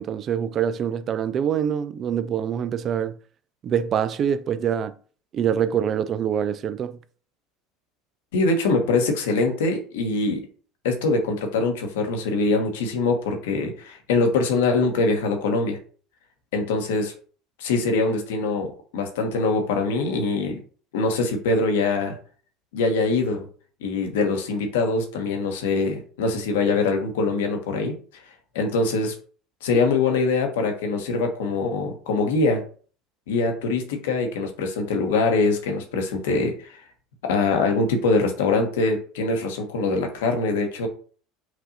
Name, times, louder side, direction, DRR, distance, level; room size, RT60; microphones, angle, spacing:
voice 1, 0.0-3.1 3.6-4.9 5.3-7.0, right 8 dB, 45° right, 0.3 m, -25 dB
voice 2, 8.3-10.4 10.8-15.8 16.5-17.1 17.6-20.6 20.9-22.2 22.7-23.5 23.8-27.9 28.5-29.1 29.6-32.6 33.3-36.7 37.2-40.9, left 3 dB, 80° left, 1.0 m, -23 dB
6.0 x 2.6 x 2.7 m
hypercardioid pair, 80°, 0 cm